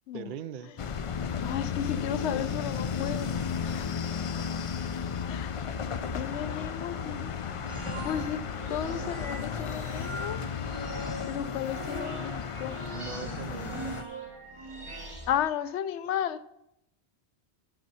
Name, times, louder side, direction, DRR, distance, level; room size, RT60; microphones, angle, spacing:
voice 1, 0.1-0.8 12.9-14.0, right 8 dB, 60° right, 12 dB, 0.6 m, -40 dB
sound 1, 0.8-14.0, left 6 dB, 55° left, 0.3 m, -34 dB
voice 2, 1.4-3.3 3.6-3.9 5.3-5.6 6.1-7.3 8.0-8.4 8.7-10.4 11.3-12.8 15.3-16.4, left 10 dB, 90° left, 14 dB, 0.9 m, -33 dB
sound 2, 7.7-15.4, right 1 dB, 25° right, 1.7 m, -41 dB
7.9 x 7.6 x 5.5 m, 0.83 s
omnidirectional pair, 1.1 m